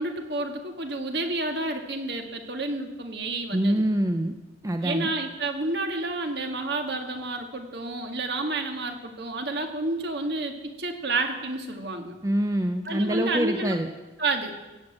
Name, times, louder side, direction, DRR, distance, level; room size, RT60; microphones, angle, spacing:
voice 1, 0.0-3.8 4.8-12.1 12.9-13.7 14.2-14.5, right 2 dB, 55° right, 5 dB, 1.9 m, -30 dB
voice 2, 3.5-4.3 4.6-5.1 12.2-13.9, right 1 dB, 15° right, 7 dB, 0.6 m, -25 dB
16.0 x 7.9 x 8.7 m, 1.1 s
head